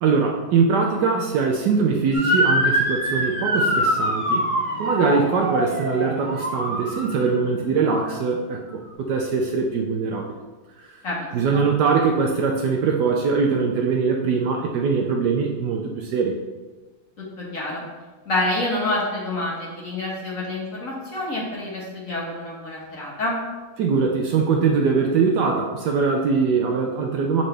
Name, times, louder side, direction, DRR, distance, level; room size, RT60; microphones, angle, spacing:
voice 1, 0.0-10.4 10.8-11.0 11.3-16.3 23.8-27.4, right 5 dB, 70° right, 1 dB, 1.0 m, -22 dB
Motor vehicle (road) / Siren, 2.1-7.4, equal, 20° right, 0.9 m, -24 dB
voice 2, 11.0-11.6 17.2-17.8 18.3-23.4, left 2 dB, 45° left, -4 dB, 1.5 m, -28 dB
7.3 x 4.0 x 3.3 m, 1.3 s
omnidirectional pair, 2.1 m